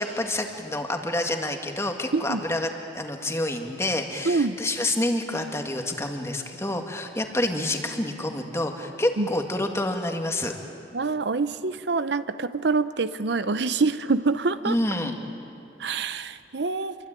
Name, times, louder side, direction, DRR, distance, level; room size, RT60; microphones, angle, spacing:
voice 1, 0.0-2.7 2.9-10.5 14.7-15.1, left 1 dB, 15° left, 4 dB, 2.0 m, -28 dB
voice 2, 4.2-4.6 9.2-9.3 10.9-14.8 15.8-17.0, right 4 dB, 70° right, 13 dB, 0.7 m, -25 dB
28.0 x 23.5 x 9.0 m, 2.9 s
head